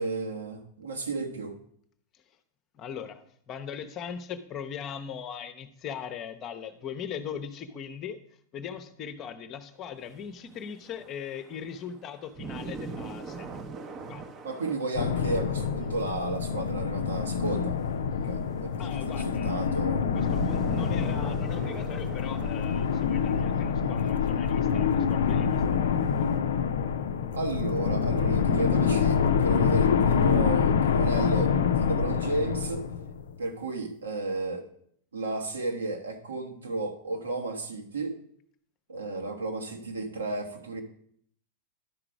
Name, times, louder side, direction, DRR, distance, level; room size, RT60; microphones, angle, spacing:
voice 1, 0.0-1.5 14.4-17.8 18.1-20.1 27.3-32.8 33.4-34.7 35.1-38.2 38.9-40.8, right 2 dB, 70° right, 2 dB, 1.3 m, -33 dB
voice 2, 2.7-8.2 8.5-13.5 14.0-14.3 18.8-19.8 20.1-26.3, left 8 dB, 35° left, 10 dB, 0.8 m, -40 dB
sound 1, 10.0-16.3 17.6-24.1 24.3-24.4 25.5-26.4, right 4 dB, 30° right, 0.8 m, -42 dB
sound 2, 14.9-33.4, left 7 dB, 65° left, 0.5 m, -26 dB
11.5 x 4.9 x 4.9 m, 0.64 s
figure-of-eight pair, 90°, 0 cm